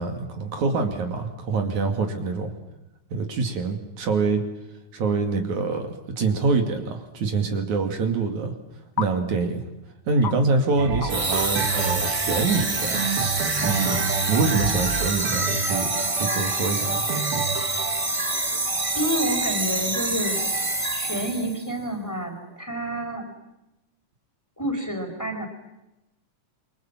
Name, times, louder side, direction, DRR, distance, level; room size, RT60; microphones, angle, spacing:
voice 1, 0.0-2.5 3.1-4.5 4.9-8.5 9.0-9.6 10.1-13.0 13.6-17.1, right 4 dB, 70° right, 4 dB, 3.8 m, -25 dB
sound 1, 6.8-6.9 9.0-9.1 9.6-9.7 10.2-10.4 11.0-11.1 11.4-11.5 11.9-12.1, left 8 dB, 55° left, 1.5 m, -30 dB
sound 2, 10.8-20.6 21.2-21.3, right 6 dB, 55° right, 2.0 m, -30 dB
sound 3, 11.1-21.6, right 2 dB, 20° right, 0.9 m, -26 dB
voice 2, 18.9-20.4 20.9-23.3 24.6-25.5, equal, 5° left, 3 dB, 4.3 m, -29 dB
27.5 x 24.5 x 7.5 m, 0.95 s
omnidirectional pair, 3.6 m